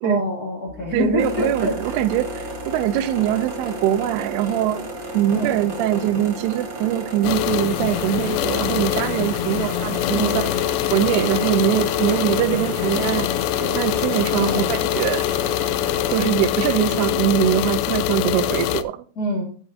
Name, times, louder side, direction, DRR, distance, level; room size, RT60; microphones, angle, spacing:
voice 1, 0.0-1.8 5.3-5.7 10.1-10.5 12.6-12.8 14.4-14.7 19.2-19.4, left 1 dB, 60° left, 0.9 m, -25 dB
sound 1, 0.7-9.4, left 3 dB, ahead, 1.1 m, -44 dB
voice 2, 0.9-4.9 5.1-10.3 10.9-13.3 13.6-15.3 16.1-19.0, right 12 dB, 85° right, 2.6 m, -22 dB
sound 2, 1.2-16.2, right 1 dB, 40° right, 2.0 m, -33 dB
sound 3, 7.2-18.8, left 14 dB, 90° left, 2.1 m, -24 dB
12.0 x 9.1 x 2.6 m
omnidirectional pair, 4.7 m